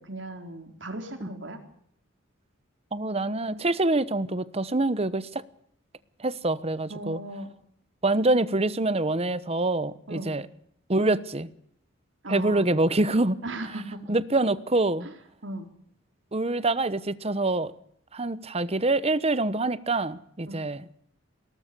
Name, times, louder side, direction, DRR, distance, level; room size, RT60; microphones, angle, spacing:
voice 1, 0.0-1.6 6.9-7.5 10.1-10.4 12.2-12.7 13.4-14.0 15.0-15.1 15.4-15.7 20.5-20.6, right 1 dB, 65° right, 4.1 m, -37 dB
voice 2, 2.9-5.4 6.2-7.2 8.0-10.5 10.9-11.5 12.3-13.4 14.1-15.1 16.3-17.7 18.1-20.8, right 2 dB, 30° right, 1.0 m, -25 dB
21.5 x 18.5 x 7.0 m
head